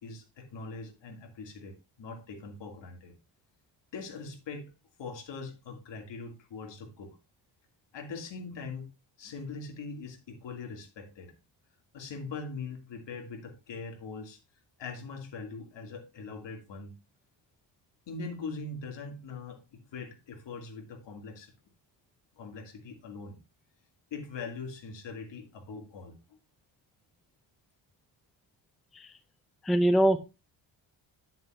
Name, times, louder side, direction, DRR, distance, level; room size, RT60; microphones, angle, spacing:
voice 1, 0.0-3.1 3.9-4.7 5.0-7.2 7.9-8.9 9.2-11.3 11.9-14.4 14.8-16.9 18.1-21.5 22.4-23.4 24.1-26.4, left 4 dB, 65° left, 2.7 m, -42 dB
voice 2, 29.6-30.2, right 1 dB, ahead, 0.4 m, -23 dB
9.8 x 7.6 x 2.6 m
wide cardioid pair, 175°, 47 cm